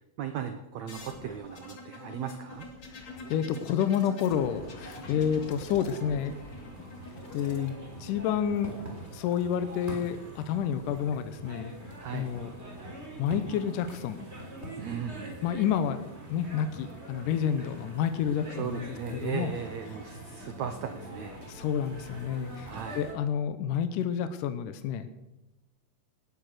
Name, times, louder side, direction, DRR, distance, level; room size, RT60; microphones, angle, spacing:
voice 1, 0.2-2.7 12.0-12.3 14.8-15.4 18.6-21.3 22.6-23.0, right 8 dB, 80° right, 8 dB, 1.6 m, -37 dB
sound 1, 0.9-9.4 10.5-11.1, left 2 dB, 35° left, 2.3 m, -47 dB
voice 2, 2.9-6.3 7.3-7.7 8.0-8.7 9.1-11.7 12.1-12.5 13.2-14.3 15.4-16.0 16.3-19.5 21.5-25.1, left 8 dB, 75° left, 10 dB, 2.0 m, -29 dB
sound 2, 4.2-23.1, right 1 dB, 15° right, 3.7 m, -44 dB
18.5 x 10.5 x 6.6 m, 1.0 s
omnidirectional pair, 4.6 m